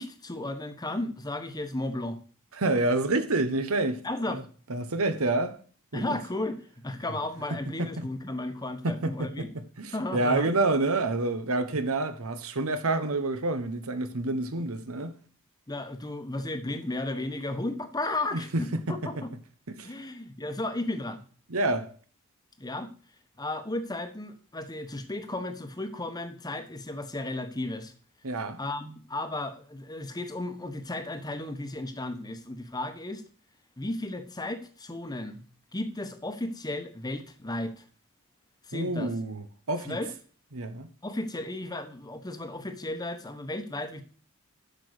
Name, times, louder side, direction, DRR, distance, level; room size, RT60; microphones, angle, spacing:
voice 1, 0.0-2.2 4.0-4.4 5.9-9.5 9.9-10.5 15.7-19.3 19.8-21.2 22.6-22.9 23.4-27.9 28.6-33.2 33.8-35.4 35.7-37.8 38.7-39.1 39.8-40.1 41.0-44.0, left 2 dB, 20° left, 1.1 m, -34 dB
voice 2, 2.6-4.0 4.3-4.4 4.7-5.6 5.9-6.2 7.5-8.1 8.8-9.5 9.8-15.1 18.3-19.0 19.7-19.9 21.5-21.9 28.2-28.6 38.7-39.4 39.7-40.0 40.5-40.9, right 2 dB, 75° right, 1.1 m, -28 dB
8.0 x 6.5 x 6.5 m
head